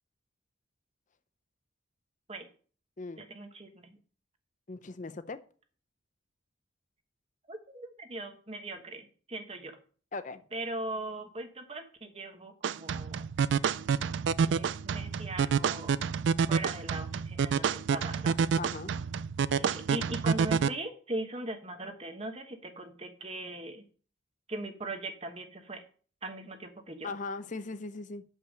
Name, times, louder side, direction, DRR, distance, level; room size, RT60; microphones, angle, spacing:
voice 1, 3.2-4.0 7.5-9.8 10.5-13.3 14.5-16.0 16.5-18.4 19.6-23.9 24.5-25.8 26.2-27.1, right 2 dB, 30° right, 1.1 m, -40 dB
voice 2, 4.7-5.4 10.1-10.4 18.6-18.9 27.0-28.2, left 3 dB, 40° left, 0.6 m, -39 dB
sound 1, 12.6-20.7, right 6 dB, 65° right, 0.3 m, -28 dB
6.7 x 5.5 x 6.5 m
head